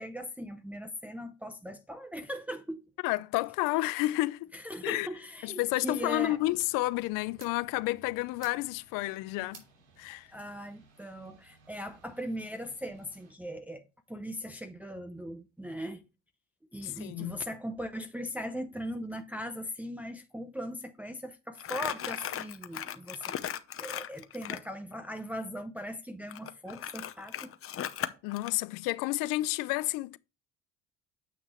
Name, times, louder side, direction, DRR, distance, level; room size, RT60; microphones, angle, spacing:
voice 1, 0.0-2.8 4.5-6.4 10.3-16.0 16.7-23.4 23.7-27.5, equal, 5° right, 0.7 m, -39 dB
voice 2, 3.0-4.5 4.8-5.1 5.4-9.6 10.0-10.3 16.8-17.4 28.2-30.2, left 18 dB, 85° left, 0.6 m, -30 dB
sound 1, 5.9-13.3, right 5 dB, 85° right, 2.9 m, -58 dB
Crumpling crinkling, 21.6-24.7 26.3-28.5, left 10 dB, 45° left, 0.8 m, -37 dB
9.3 x 6.0 x 3.0 m
cardioid pair, 95°, 32 cm